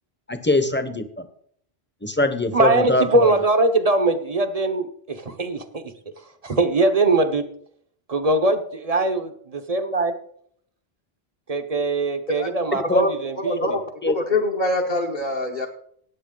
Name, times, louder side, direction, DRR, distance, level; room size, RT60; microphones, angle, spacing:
voice 1, 0.3-1.2 2.0-3.3 12.7-13.0 13.6-13.7 14.0-14.1, left 2 dB, 10° left, 10 dB, 0.9 m, -22 dB
voice 2, 2.5-5.9 6.4-7.4 8.1-10.1 11.5-13.8, right 2 dB, 40° right, 8 dB, 0.9 m, -21 dB
voice 3, 13.4-13.8 14.1-15.7, left 2 dB, 50° left, -1 dB, 1.3 m, -24 dB
17.0 x 8.2 x 3.8 m, 0.64 s
omnidirectional pair, 1.0 m